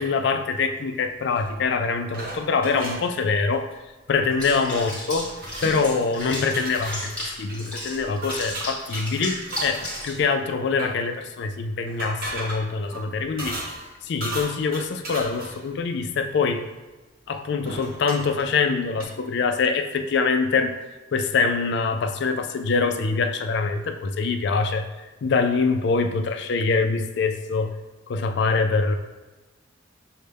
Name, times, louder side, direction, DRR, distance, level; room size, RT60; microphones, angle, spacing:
voice 1, 0.0-3.7 4.1-5.3 5.6-13.6 14.0-16.6 17.3-20.7 21.1-24.9 25.2-27.7 28.1-28.9, left 4 dB, 60° left, 6 dB, 0.4 m, -24 dB
sound 1, 1.3-1.6 2.1-3.1 4.2-4.5 4.8-4.9 5.2-6.0 6.5-7.1 7.5-7.6 8.2-10.1 10.7-11.0 11.9-13.9 14.2-15.7 17.3-17.4 17.7-18.5 19.0-19.1, right 1 dB, 50° right, 0.9 m, -36 dB
Water / Bathtub (filling or washing), 4.4-10.2, equal, 5° left, 1.2 m, -34 dB
6.4 x 2.1 x 3.4 m, 1.2 s
head